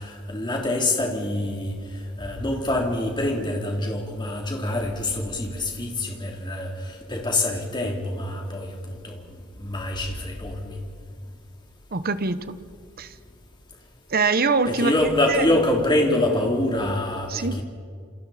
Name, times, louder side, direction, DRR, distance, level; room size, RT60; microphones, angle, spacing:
voice 1, 0.0-1.8 2.2-9.2 9.6-10.8 14.6-17.6, left 1 dB, 20° left, 3.2 m, -25 dB
voice 2, 11.9-12.6 13.0-13.1 14.1-14.9 15.3-15.4 17.3-17.6, right 4 dB, 45° right, 1.0 m, -23 dB
28.5 x 28.0 x 4.3 m
head